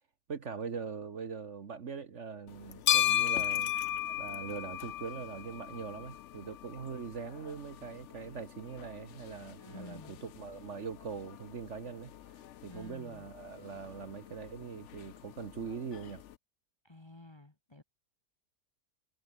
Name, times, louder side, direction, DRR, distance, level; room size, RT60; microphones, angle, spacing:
voice 1, 0.3-3.7 4.2-16.2, right 6 dB, 50° right, 1.5 m, -42 dB
sound 1, 2.5-16.3, left 11 dB, 60° left, 0.8 m, -37 dB
voice 2, 9.6-10.2 12.7-13.3 16.8-17.8, left 2 dB, 20° left, 1.2 m, -51 dB
omnidirectional pair, 1.7 m